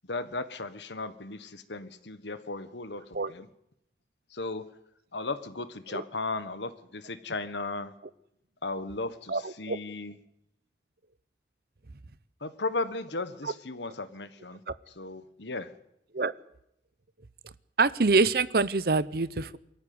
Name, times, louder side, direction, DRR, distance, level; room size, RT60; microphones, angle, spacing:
voice 1, 0.1-3.5 4.3-4.7 5.1-7.9 8.6-10.2 12.4-15.7, left 3 dB, 75° left, 12 dB, 1.5 m, -36 dB
voice 2, 9.3-9.8 16.1-16.3 17.8-19.6, right 3 dB, 55° right, 16 dB, 0.8 m, -25 dB
23.0 x 14.5 x 9.7 m, 0.79 s
head